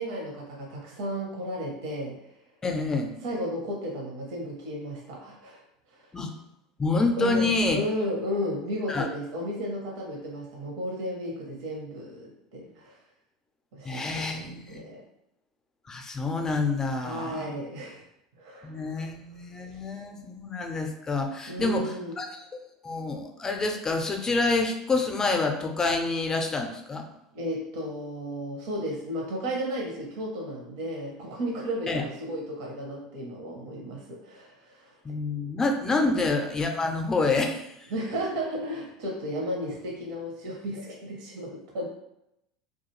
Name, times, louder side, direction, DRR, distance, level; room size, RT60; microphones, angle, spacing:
voice 1, 0.0-2.2 3.2-5.6 5.9-6.0 7.2-13.0 13.7-15.0 17.0-18.0 18.4-19.1 19.7-19.8 20.2-20.3 21.5-22.2 27.3-35.0 36.0-36.2 37.9-41.9, equal, 65° right, -1 dB, 0.7 m, -34 dB
voice 2, 2.6-3.1 6.1-6.3 6.8-7.8 8.9-9.1 13.8-14.8 15.9-17.5 18.6-22.3 22.8-27.1 31.9-32.0 35.0-37.7, left 3 dB, 20° left, 4 dB, 0.4 m, -27 dB
2.3 x 2.2 x 3.0 m, 0.83 s
hypercardioid pair, 85°, 3 cm